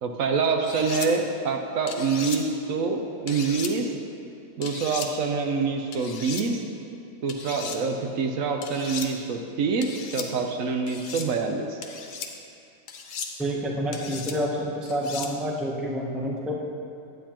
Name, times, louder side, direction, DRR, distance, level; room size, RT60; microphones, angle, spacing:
voice 1, 0.0-3.9 4.6-6.6 7.2-11.8, right 4 dB, 75° right, 3 dB, 1.0 m, -26 dB
sound 1, 0.6-1.1 1.9-2.4 3.3-3.7 4.6-5.1 5.9-6.4 7.3-7.8 8.6-9.1 9.8-10.3 10.9-11.3 11.8-12.3 12.9-13.3 13.9-14.4 14.9-15.3, left 6 dB, 75° left, 1.1 m, -36 dB
voice 2, 13.4-16.6, equal, ahead, -2 dB, 0.5 m, -28 dB
9.4 x 9.0 x 2.9 m, 2.6 s
omnidirectional pair, 1.5 m